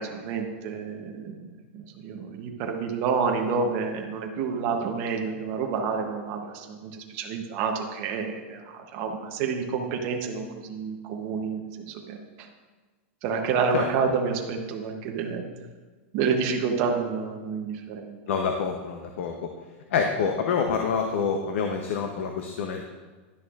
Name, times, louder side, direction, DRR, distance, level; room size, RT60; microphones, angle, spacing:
voice 1, 0.0-12.5 13.2-15.4 16.1-18.2, right 5 dB, 35° right, 2 dB, 0.8 m, -29 dB
voice 2, 18.3-19.5 19.9-22.8, left 6 dB, 70° left, 3 dB, 0.7 m, -27 dB
11.0 x 6.4 x 2.4 m, 1.3 s
supercardioid pair, 165°, 7 cm